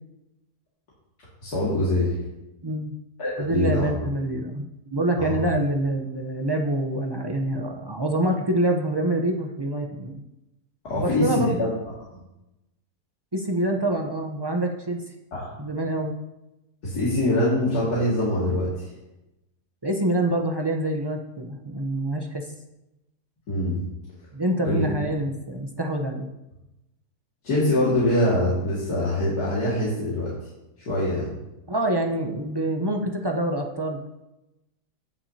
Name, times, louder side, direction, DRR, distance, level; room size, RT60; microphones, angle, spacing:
voice 1, 1.4-2.1 3.2-3.9 5.2-5.3 10.8-11.7 15.3-15.5 16.8-18.9 23.5-23.8 24.6-24.8 27.4-30.3 30.9-31.3, left 1 dB, 75° left, -8 dB, 2.7 m, -23 dB
voice 2, 2.6-2.9 3.4-10.2 11.0-11.6 13.3-15.0 15.6-16.1 19.8-22.4 24.3-26.3 31.7-34.0, right 1 dB, 30° right, 3 dB, 0.4 m, -26 dB
17.0 x 6.0 x 2.8 m, 0.93 s
omnidirectional pair, 1.7 m